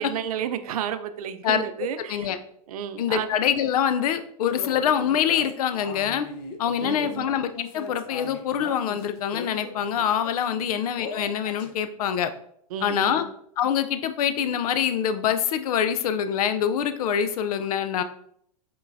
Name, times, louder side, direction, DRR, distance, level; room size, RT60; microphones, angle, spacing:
voice 1, 0.0-2.3 2.7-3.3 6.8-7.3 10.6-10.7 12.7-13.3, right 9 dB, 70° right, 11 dB, 0.5 m, -32 dB
voice 2, 1.4-2.4 3.0-6.3 6.6-12.3 12.8-13.3 13.6-18.0, left 8 dB, 70° left, 11 dB, 0.5 m, -25 dB
sound 1, 4.6-10.4 11.0-11.7, left 4 dB, 45° left, 0.9 m, -39 dB
5.3 x 3.8 x 2.6 m, 0.69 s
hypercardioid pair, 115°, 20 cm